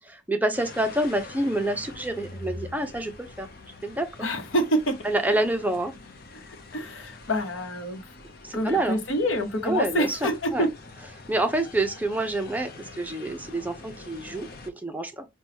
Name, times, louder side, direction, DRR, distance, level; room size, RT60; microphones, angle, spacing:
voice 1, 0.0-3.5 3.8-4.1 5.0-5.9 8.4-9.0 9.6-10.7 11.3-15.3, right 1 dB, 10° right, 0.5 m, -27 dB
sound 1, 0.5-14.7, left 3 dB, 50° left, 0.6 m, -45 dB
voice 2, 4.2-5.0 6.7-8.0 8.5-10.7, equal, 80° left, 0.9 m, -26 dB
5.8 x 2.3 x 2.8 m
head